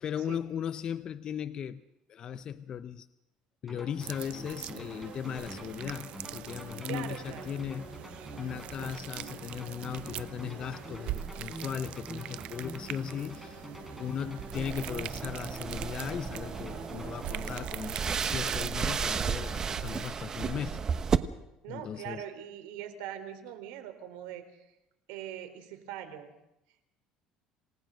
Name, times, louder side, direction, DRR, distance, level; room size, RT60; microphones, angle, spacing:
voice 1, 0.0-1.8 2.1-3.1 3.6-8.0 8.4-13.7 14.0-20.8 21.7-22.2, left 8 dB, 40° left, 11 dB, 0.8 m, -37 dB
sound 1, 3.7-17.9, right 1 dB, 5° right, 6.0 m, -45 dB
Slimy flesh, 4.0-20.1, right 13 dB, 55° right, 0.7 m, -43 dB
voice 2, 6.9-7.6 21.6-24.7 25.1-26.3, right 11 dB, 90° right, 9 dB, 3.8 m, -42 dB
sound 2, 14.5-21.2, right 6 dB, 30° right, 1.0 m, -33 dB
27.5 x 18.0 x 6.5 m, 0.87 s
cardioid pair, 140°, 2 cm